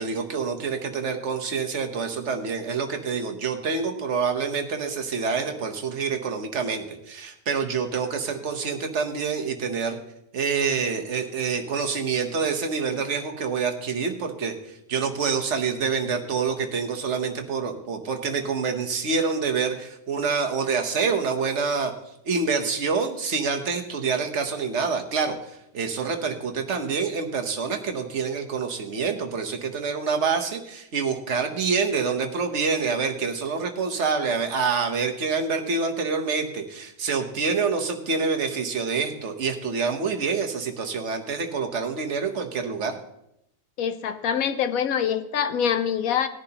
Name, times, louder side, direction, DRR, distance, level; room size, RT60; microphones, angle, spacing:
voice 1, 0.0-10.0 10.3-14.5 14.9-21.9 22.2-25.4 25.7-43.0, right 5 dB, 50° right, 5 dB, 1.2 m, -27 dB
voice 2, 43.8-46.3, left 8 dB, 65° left, 10 dB, 1.0 m, -25 dB
18.5 x 10.5 x 2.9 m, 0.82 s
omnidirectional pair, 1.8 m